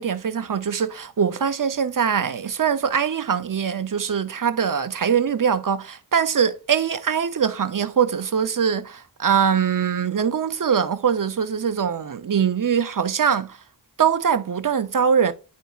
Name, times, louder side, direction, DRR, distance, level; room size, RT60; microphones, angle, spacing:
voice 1, 0.0-13.6 14.0-15.3, right 7 dB, 50° right, 0.7 m, -22 dB
10.5 x 4.0 x 2.4 m
cardioid pair, 40°, 42 cm